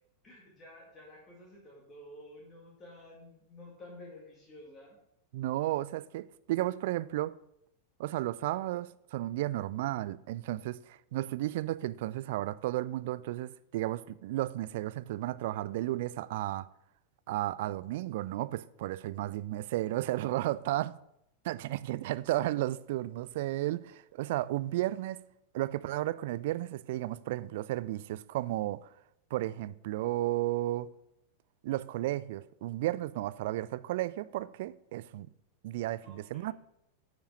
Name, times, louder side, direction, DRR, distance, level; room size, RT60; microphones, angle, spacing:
voice 1, 0.2-5.0 36.0-36.5, left 1 dB, 25° left, 2.0 m, -51 dB
voice 2, 5.3-7.4 8.0-16.7 17.3-21.0 21.4-25.2 25.5-28.9 29.3-30.9 31.6-35.3 35.6-36.5, right 16 dB, 50° right, 0.3 m, -33 dB
9.7 x 5.1 x 4.9 m
figure-of-eight pair, 90°, 0 cm